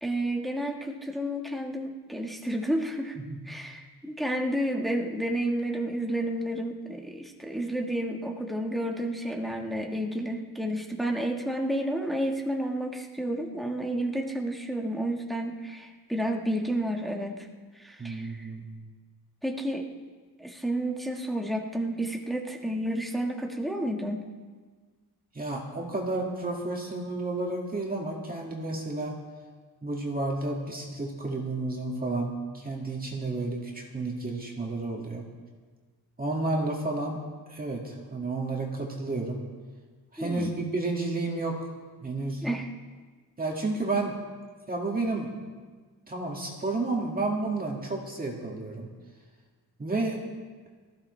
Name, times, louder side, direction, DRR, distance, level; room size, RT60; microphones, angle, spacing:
voice 1, 0.0-3.2 3.4-17.4 17.7-18.5 19.4-19.8 20.4-24.2 40.2-40.5 42.4-42.7, right 1 dB, ahead, 1 dB, 1.5 m, -31 dB
voice 2, 18.0-18.7 25.3-29.2 29.8-35.3 36.2-37.2 37.5-39.4 40.1-41.7 42.0-42.4 43.4-44.1 44.7-45.3 46.1-48.9 49.8-50.2, right 2 dB, 20° right, -1 dB, 2.1 m, -31 dB
18.5 x 14.5 x 3.3 m, 1.5 s
cardioid pair, 120°, 39 cm